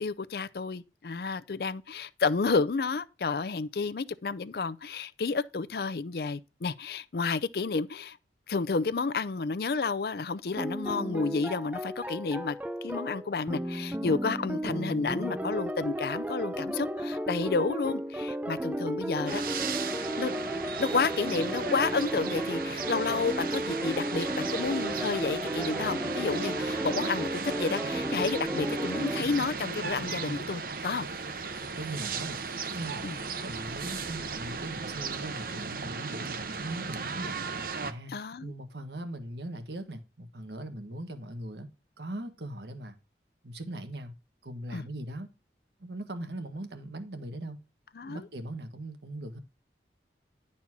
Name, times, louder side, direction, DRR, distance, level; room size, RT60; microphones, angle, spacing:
voice 1, 0.0-8.2 8.5-19.4 20.2-20.4 20.8-31.1 33.0-33.2 38.1-38.5 44.7-44.9 48.0-48.2, left 4 dB, 60° left, 0.5 m, -31 dB
sound 1, 10.6-29.2, right 1 dB, 10° right, 0.4 m, -34 dB
sound 2, 19.3-37.9, right 4 dB, 55° right, 0.8 m, -36 dB
voice 2, 31.8-33.0 33.4-37.4 37.8-41.7 42.0-43.0 43.4-44.1 44.4-45.3 45.8-47.6 48.0-49.4, right 1 dB, 75° right, 1.5 m, -40 dB
11.0 x 4.3 x 6.0 m
head